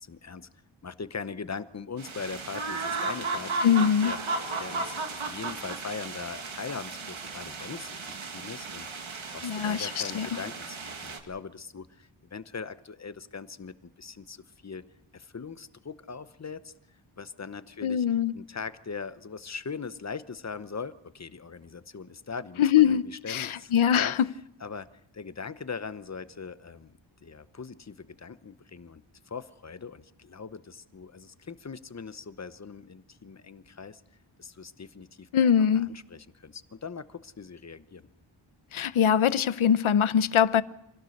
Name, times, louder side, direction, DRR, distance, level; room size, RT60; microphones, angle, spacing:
voice 1, 0.0-0.5 0.8-4.2 4.6-14.8 15.1-16.7 17.2-18.0 18.3-24.1 24.6-24.9 25.1-34.0 34.4-38.1, left 5 dB, 35° left, 0.9 m, -41 dB
sound 1, 2.0-11.2, right 3 dB, 80° right, 2.2 m, -35 dB
voice 2, 3.6-4.1 9.4-10.3 17.8-18.3 22.6-24.3 35.3-35.9 38.7-40.6, left 8 dB, 90° left, 0.8 m, -23 dB
25.5 x 16.5 x 6.5 m
wide cardioid pair, 130°, 48 cm